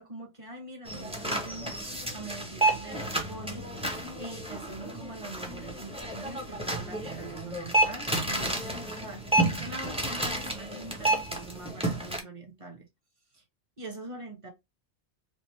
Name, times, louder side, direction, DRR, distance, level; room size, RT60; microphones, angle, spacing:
voice 1, 0.0-3.7 4.2-12.9 13.3-13.4 13.8-14.5, right 2 dB, 25° right, 1.1 m, -43 dB
sound 1, 0.9-12.2, right 2 dB, 5° right, 0.7 m, -31 dB
4.6 x 2.6 x 3.1 m
omnidirectional pair, 1.3 m